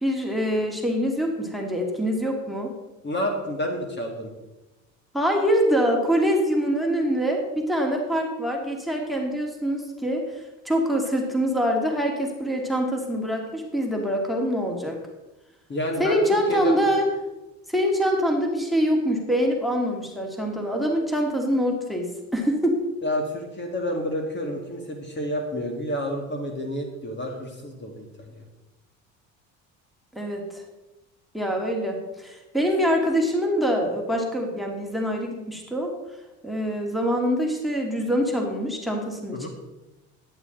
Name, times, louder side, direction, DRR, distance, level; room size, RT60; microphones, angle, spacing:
voice 1, 0.0-2.7 5.1-15.0 16.0-17.1 17.7-22.8 30.1-30.6 31.3-35.9 36.4-39.5, equal, ahead, 1 dB, 2.1 m, -24 dB
voice 2, 3.0-4.3 15.7-16.9 23.0-28.4 39.3-39.5, left 1 dB, 30° left, 2 dB, 1.9 m, -29 dB
11.0 x 9.3 x 3.8 m, 1.0 s
supercardioid pair, 95°, 34 cm